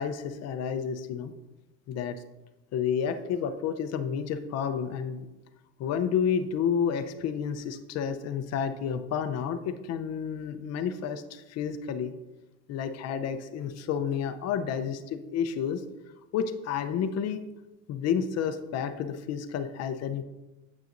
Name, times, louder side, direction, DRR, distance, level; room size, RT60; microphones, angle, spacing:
voice 1, 0.0-1.3 1.9-2.2 2.7-5.3 5.8-12.1 12.7-15.8 16.3-17.4 17.9-20.2, left 7 dB, 50° left, 9 dB, 0.7 m, -30 dB
9.2 x 8.3 x 2.6 m, 1.0 s
cardioid pair, 130°, 33 cm